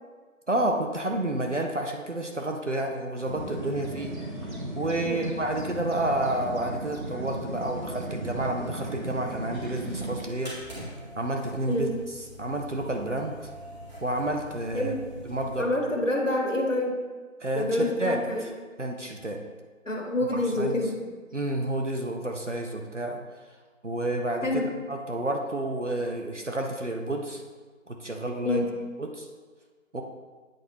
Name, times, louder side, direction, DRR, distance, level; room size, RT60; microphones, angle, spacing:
voice 1, 0.5-10.5 11.2-11.9 12.4-13.3 14.0-14.9 15.3-15.8 17.4-18.2 18.8-19.4 20.3-20.8 21.3-23.2 23.8-27.4 27.9-28.6 29.0-29.3 29.9-30.0, right 1 dB, 60° right, 2 dB, 0.7 m, -30 dB
sound 1, 3.3-10.2, right 1 dB, 85° right, 1.5 m, -36 dB
sound 2, 9.8-15.7, equal, 35° right, 2.0 m, -44 dB
voice 2, 15.6-17.0 17.5-18.5 19.8-21.0 24.4-24.7 28.4-28.7, left 1 dB, 65° left, 0 dB, 1.4 m, -27 dB
8.6 x 4.2 x 3.1 m, 1.4 s
figure-of-eight pair, 175°, 41 cm